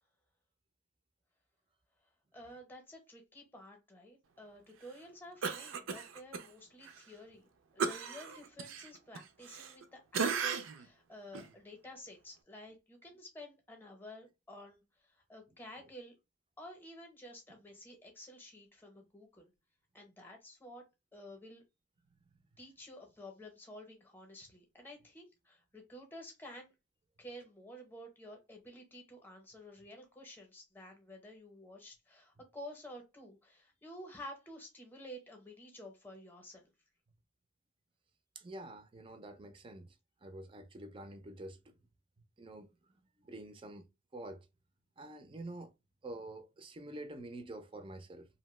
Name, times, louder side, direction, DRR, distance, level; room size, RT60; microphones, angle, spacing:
voice 1, 2.3-7.5 7.7-16.1 16.6-19.5 19.9-20.8 21.1-21.6 22.6-26.7 27.2-36.7, equal, 10° left, 0.7 m, -51 dB
Cough, 5.4-6.5 6.8-7.0 7.8-9.8 10.1-10.9 11.3-11.5, right 5 dB, 85° right, 0.4 m, -36 dB
voice 2, 38.4-40.0 40.2-41.7 42.4-42.7 43.2-43.9 44.1-44.5 45.0-45.7 46.0-48.3, right 1 dB, 25° right, 0.4 m, -47 dB
2.7 x 2.0 x 3.0 m
head